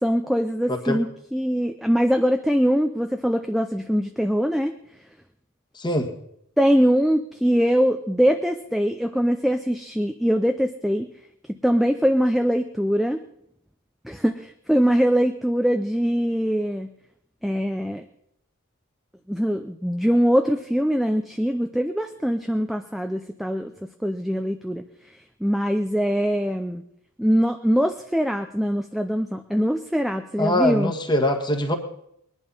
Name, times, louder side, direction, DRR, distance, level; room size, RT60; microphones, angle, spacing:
voice 1, 0.0-4.7 6.6-11.1 11.6-13.2 14.0-16.9 17.4-18.0 19.3-23.7 24.0-24.8 25.4-26.8 27.2-30.9, equal, ahead, 6 dB, 0.5 m, -22 dB
voice 2, 5.8-6.1 30.4-31.8, left 1 dB, 20° left, 4 dB, 1.5 m, -23 dB
21.0 x 11.0 x 5.5 m, 0.75 s
head